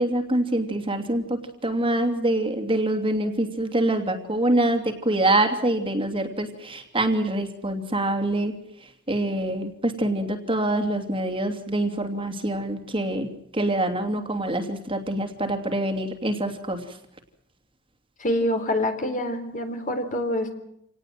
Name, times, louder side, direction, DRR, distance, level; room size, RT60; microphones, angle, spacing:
voice 1, 0.0-8.5 8.8-17.0, right 1 dB, 25° right, 6 dB, 2.9 m, -25 dB
voice 2, 18.2-20.5, left 1 dB, 40° left, 6 dB, 3.9 m, -26 dB
28.0 x 19.0 x 7.7 m, 0.77 s
head